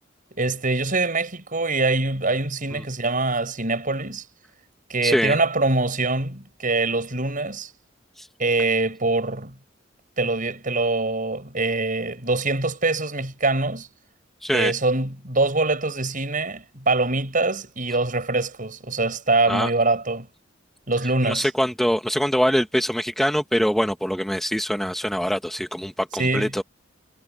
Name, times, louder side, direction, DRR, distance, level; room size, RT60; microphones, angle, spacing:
voice 1, 0.4-4.2 4.9-7.7 8.4-9.5 10.2-13.9 14.5-20.3 20.9-21.5 26.2-26.5, right 3 dB, 45° right, 7.1 m, -24 dB
voice 2, 5.0-5.4 8.2-8.3 14.4-14.7 19.5-19.7 21.2-26.6, equal, ahead, 1.2 m, -23 dB
head